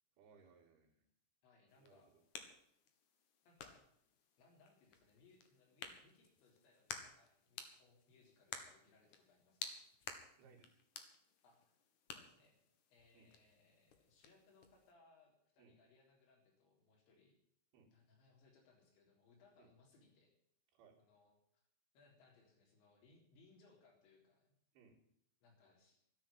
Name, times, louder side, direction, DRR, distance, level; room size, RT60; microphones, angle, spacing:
voice 1, 0.2-1.1 1.8-2.2 10.4-10.8 13.1-13.3 15.6-15.8 17.7-17.9 19.6-19.7 20.7-21.0 24.7-25.0, right 5 dB, 65° right, -6 dB, 4.3 m, -66 dB
voice 2, 1.4-2.1 3.4-3.8 4.4-9.7 11.4-11.7 12.1-12.6 12.9-17.4 17.9-20.3 21.0-21.6 21.9-24.5 25.4-26.0, left 3 dB, 80° left, 1 dB, 6.0 m, -70 dB
sound 1, 1.7-14.9, left 6 dB, 60° left, 2.3 m, -54 dB
13.0 x 10.5 x 8.7 m, 0.73 s
omnidirectional pair, 5.2 m